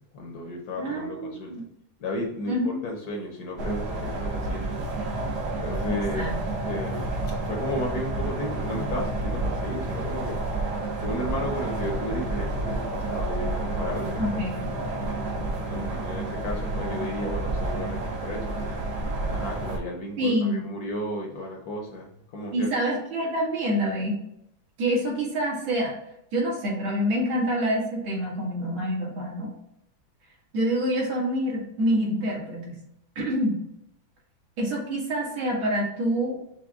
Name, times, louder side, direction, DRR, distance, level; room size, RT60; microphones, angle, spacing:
voice 1, 0.1-1.6 2.0-4.7 5.6-6.3 6.6-7.1 7.4-10.4 11.0-14.5 15.3-18.5 19.3-22.7, left 1 dB, 60° left, 1 dB, 1.1 m, -34 dB
voice 2, 0.8-1.7 2.5-2.8 5.9-6.4 14.2-14.6 20.2-20.6 22.5-24.2 24.8-25.9 26.3-29.5 30.5-32.8 33.2-33.6 34.6-36.4, equal, 80° right, -5 dB, 2.5 m, -26 dB
sound 1, 3.6-19.8, right 2 dB, 65° right, 1.4 m, -30 dB
6.0 x 2.2 x 3.5 m, 0.79 s
omnidirectional pair, 2.2 m